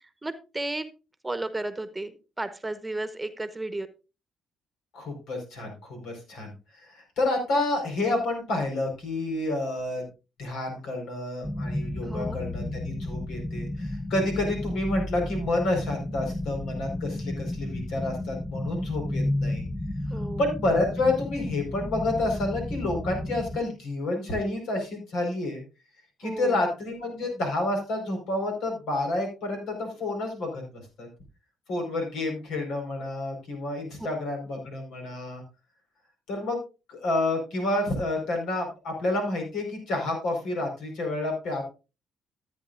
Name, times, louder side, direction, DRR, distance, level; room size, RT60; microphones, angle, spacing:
voice 1, 0.2-0.9 1.2-3.9 12.0-12.4 20.1-20.4 26.2-26.6, right 2 dB, 15° right, 11 dB, 1.1 m, -33 dB
voice 2, 4.9-6.5 6.7-10.0 10.4-19.7 20.4-25.6 26.2-31.1 31.7-35.4 36.3-36.6 36.9-41.6, left 2 dB, 85° left, 3 dB, 4.8 m, -29 dB
sound 1, 11.4-23.6, left 1 dB, 5° left, 0.7 m, -32 dB
14.5 x 9.0 x 2.5 m, 0.30 s
cardioid pair, 90°, 0 cm